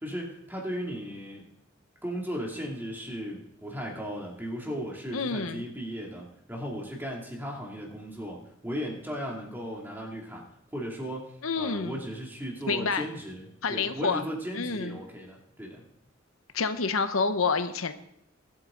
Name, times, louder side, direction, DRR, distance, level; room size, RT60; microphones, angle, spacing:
voice 1, 0.0-1.4 2.0-10.5 10.7-15.8, equal, 10° right, -1 dB, 2.4 m, -36 dB
voice 2, 5.1-5.6 11.4-12.0 12.7-13.1 13.6-14.2 14.5-15.0 16.5-17.9, left 4 dB, 85° left, 10 dB, 0.9 m, -28 dB
21.5 x 8.7 x 3.8 m, 0.75 s
head